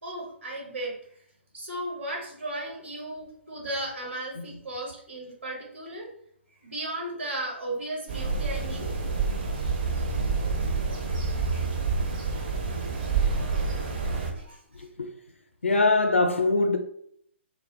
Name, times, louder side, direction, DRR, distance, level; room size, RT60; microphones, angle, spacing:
voice 1, 0.0-0.9 1.5-6.1 6.6-8.9 12.1-12.2 14.3-14.9, right 1 dB, 75° right, 1.0 m, -35 dB
sound 1, 8.1-14.3, right 4 dB, 45° right, 0.8 m, -28 dB
voice 2, 14.7-15.1 15.6-16.8, left 3 dB, 80° left, 0.4 m, -23 dB
2.3 x 2.0 x 3.1 m
figure-of-eight pair, 130°, 7 cm